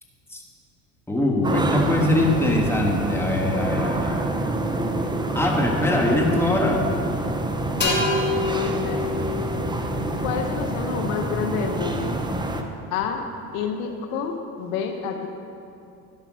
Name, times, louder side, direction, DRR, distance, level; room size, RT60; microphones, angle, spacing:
voice 1, 1.1-4.3 5.3-6.8, left 1 dB, 5° left, 0 dB, 1.6 m, -22 dB
sound 1, 1.4-12.6, right 2 dB, 10° right, 0.7 m, -27 dB
voice 2, 7.7-9.0 10.2-12.2 12.9-13.2 13.5-15.3, left 6 dB, 70° left, 4 dB, 1.1 m, -29 dB
sound 2, 7.8-11.4, left 3 dB, 25° left, 2.3 m, -28 dB
12.0 x 5.7 x 6.2 m, 2.5 s
hypercardioid pair, 90°, 43 cm